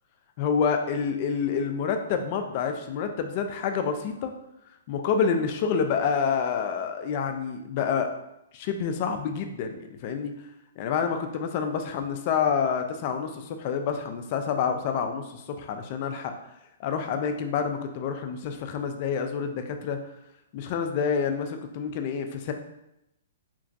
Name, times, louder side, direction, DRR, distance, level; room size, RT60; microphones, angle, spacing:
voice 1, 0.4-4.3 4.9-8.1 8.5-9.8 10.0-10.3 10.8-16.3 16.8-20.0 20.5-22.5, left 6 dB, 45° left, 6 dB, 0.3 m, -28 dB
2.9 x 2.4 x 2.6 m, 0.86 s
hypercardioid pair, 130°, 0 cm